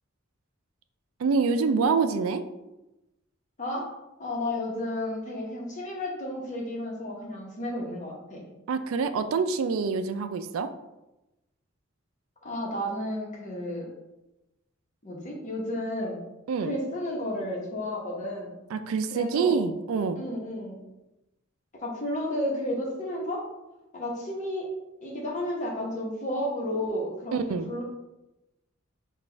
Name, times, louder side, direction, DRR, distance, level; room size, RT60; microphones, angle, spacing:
voice 1, 1.2-2.4 8.7-10.7 16.5-16.7 18.7-20.2 27.3-27.7, right 5 dB, 80° right, 10 dB, 0.3 m, -26 dB
voice 2, 4.2-8.4 12.4-13.9 15.0-16.2 16.6-18.5 19.1-19.6 20.1-20.8 21.7-23.5 23.9-24.7 25.0-27.8, left 1 dB, 40° left, -2 dB, 1.0 m, -32 dB
4.1 x 2.4 x 4.3 m, 0.98 s
head